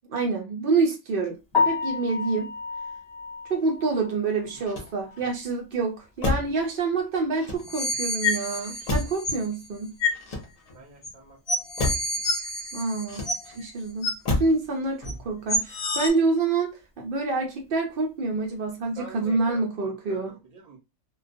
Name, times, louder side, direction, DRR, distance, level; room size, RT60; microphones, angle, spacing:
voice 1, 0.1-1.4 1.6-2.5 3.5-9.9 12.7-13.3 13.5-20.3, right 3 dB, 80° right, 0.4 m, -27 dB
Piano, 1.5-5.5 5.9-6.0 6.5-6.6 6.9-7.0 10.1-10.2 18.7-18.9, left 5 dB, 20° left, 0.8 m, -30 dB
Motor vehicle (road), 4.5-5.3 6.2-6.6 7.3-8.0 8.9-9.3 10.1-10.9 11.8-12.1 13.1-13.6 14.2-14.6 15.0-15.4, left 2 dB, 55° left, 0.4 m, -30 dB
sound 1, 7.6-9.5 10.0-10.2 11.0-11.1 11.5-13.6 14.0-14.1 15.0-15.1 15.5-16.1, left 2 dB, 90° left, 1.1 m, -28 dB
voice 2, 10.7-12.2 19.0-20.8, right 3 dB, 40° right, 0.7 m, -47 dB
2.2 x 2.2 x 2.5 m
omnidirectional pair, 1.5 m